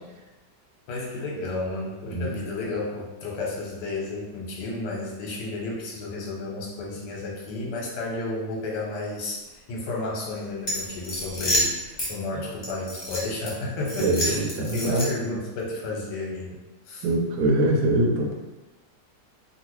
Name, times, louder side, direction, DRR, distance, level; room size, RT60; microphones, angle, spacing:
voice 1, 0.9-9.4 9.7-14.4 14.7-16.6 16.9-17.1, left 2 dB, 80° left, -2 dB, 1.4 m, -32 dB
sound 1, 10.6-12.1 12.6-13.5 13.8-15.3, equal, 45° left, 0.7 m, -28 dB
voice 2, 14.0-15.1 17.0-18.3, right 1 dB, 80° right, 0 dB, 1.1 m, -23 dB
2.9 x 2.6 x 3.0 m, 1.1 s
omnidirectional pair, 1.9 m